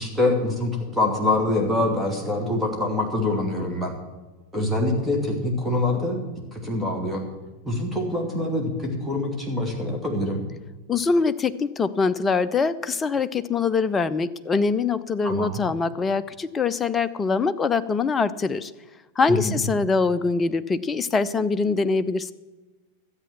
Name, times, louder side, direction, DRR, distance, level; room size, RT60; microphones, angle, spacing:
voice 1, 0.0-3.9 4.5-6.2 6.5-7.2 7.6-10.4 15.2-15.6 19.3-19.6, left 2 dB, 5° right, 1 dB, 2.6 m, -25 dB
voice 2, 10.9-18.7 19.2-22.3, left 4 dB, 20° left, 13 dB, 0.5 m, -23 dB
13.0 x 8.2 x 7.2 m, 1.2 s
figure-of-eight pair, 90°, 0 cm